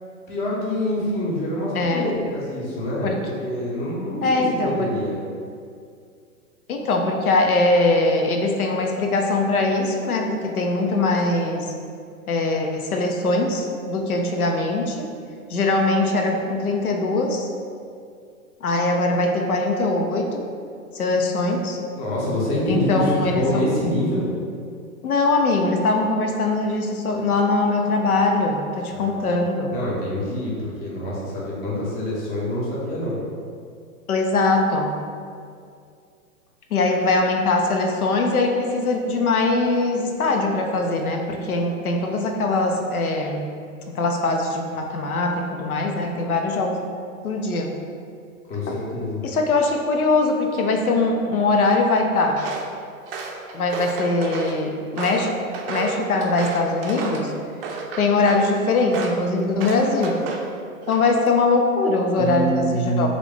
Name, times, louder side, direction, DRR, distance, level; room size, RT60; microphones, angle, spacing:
voice 1, 0.3-5.2 21.9-24.3 28.9-29.2 29.7-33.2 48.5-49.2 62.2-63.1, equal, 20° left, -5 dB, 0.7 m, -26 dB
voice 2, 1.7-2.1 3.0-3.2 4.2-4.9 6.7-11.7 12.3-15.1 15.5-17.5 18.6-20.4 20.9-21.8 22.7-23.6 25.0-29.7 34.1-35.0 36.7-43.5 43.9-46.8 47.2-47.7 48.7-48.8 49.2-52.4 53.5-55.3 55.7-57.3 58.0-60.2 60.9-63.1, left 2 dB, 90° left, 2 dB, 0.6 m, -21 dB
Walk footsteps, 52.3-52.7 53.1-54.6 55.0-57.3 57.6-58.5 58.9-59.2 59.6-60.5 60.8-61.3, right 4 dB, 45° right, 0.4 m, -32 dB
2.9 x 2.5 x 3.4 m, 2.3 s
hypercardioid pair, 115°, 42 cm